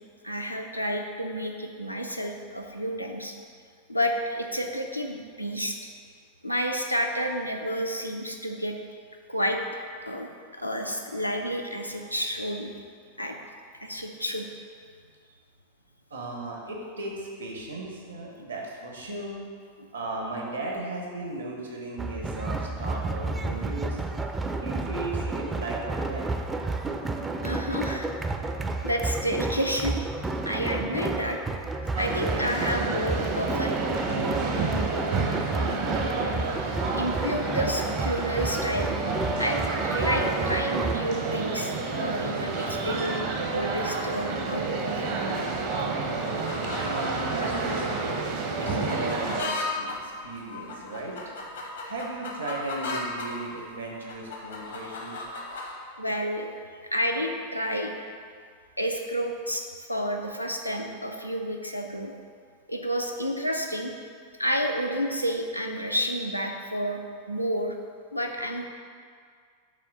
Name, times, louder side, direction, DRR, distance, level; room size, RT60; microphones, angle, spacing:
voice 1, 0.2-3.3 3.9-5.8 6.4-8.7 9.3-9.6 10.1-12.7 13.2-13.4 13.8-14.5 27.4-28.1 28.8-29.9 30.5-31.4 31.9-33.8 37.0-38.9 39.4-39.6 39.9-45.3 56.0-56.5 56.9-57.9 58.8-59.6 59.9-62.1 62.7-63.9 64.4-67.0 67.3-67.8 68.1-68.7, equal, 90° left, 2 dB, 0.5 m, -30 dB
voice 2, 16.1-19.4 19.9-24.0 24.6-26.2 46.8-51.1 51.8-55.2, right 2 dB, 80° right, -1 dB, 1.2 m, -36 dB
sound 1, 22.0-41.0, right 2 dB, 15° right, 0.4 m, -31 dB
sound 2, 31.9-49.4, right 4 dB, 50° right, 0.7 m, -30 dB
sound 3, 46.4-53.3 53.8-55.7, left 3 dB, 65° left, 0.9 m, -36 dB
5.6 x 3.6 x 5.0 m, 2.1 s
figure-of-eight pair, 90°, 0 cm